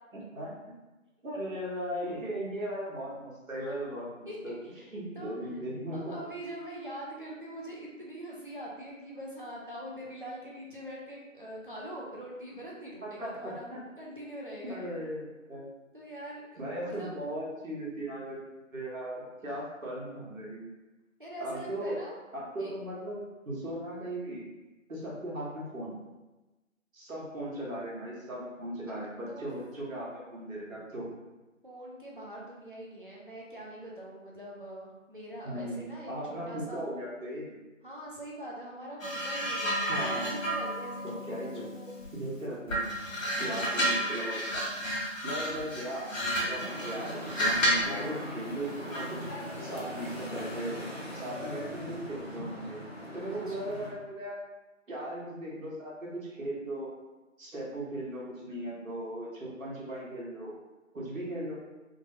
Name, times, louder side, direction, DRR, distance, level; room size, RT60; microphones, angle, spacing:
voice 1, 0.1-0.5 1.2-4.5 4.9-6.2 13.0-13.8 14.6-15.6 16.6-18.4 18.7-20.6 21.4-22.0 22.3-24.4 24.9-26.0 26.9-31.1 35.4-35.8 36.1-37.6 39.9-40.3 41.0-41.6 42.1-42.8 43.4-44.4 45.2-49.2 49.6-50.7 51.1-52.8 53.1-54.4 54.9-56.9 57.4-60.5 60.9-61.6, right 1 dB, 85° right, -5 dB, 1.2 m, -37 dB
voice 2, 4.3-4.8 5.1-5.3 5.9-13.7 14.0-14.8 15.9-17.1 21.2-22.3 22.6-22.7 28.9-29.5 31.6-36.8 37.8-41.9 43.2-43.9 45.5-45.6 53.3-53.7, right 1 dB, 45° right, -5 dB, 0.5 m, -43 dB
sound 1, 39.0-42.2 42.7-48.0 48.9-49.2, equal, 75° left, 1.1 m, -31 dB
sound 2, 46.6-53.9, left 1 dB, 50° left, 0.9 m, -40 dB
3.2 x 2.0 x 2.7 m, 1.1 s
figure-of-eight pair, 170°, 39 cm